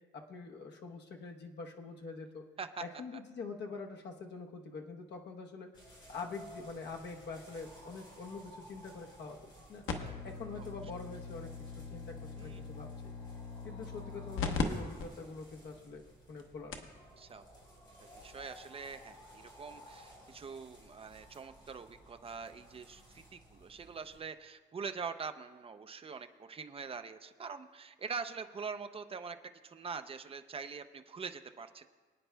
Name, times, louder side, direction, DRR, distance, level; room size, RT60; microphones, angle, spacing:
voice 1, 0.1-2.4 2.8-5.7 6.1-9.8 10.2-12.9 13.6-16.9, left 4 dB, 60° left, 2 dB, 1.0 m, -45 dB
sound 1, 5.7-24.2, equal, 25° left, 3.5 m, -56 dB
voice 2, 9.8-10.2 10.6-10.7 12.4-12.6 17.2-17.4 18.2-29.4 29.6-31.8, right 5 dB, 30° right, 9 dB, 0.5 m, -44 dB
sound 2, 9.9-14.6 15.0-15.1 15.7-15.8 16.4-16.5 16.7-17.0 18.2-18.3, left 5 dB, 85° left, 1.1 m, -39 dB
24.5 x 9.3 x 2.3 m, 1.4 s
wide cardioid pair, 160°, 20 cm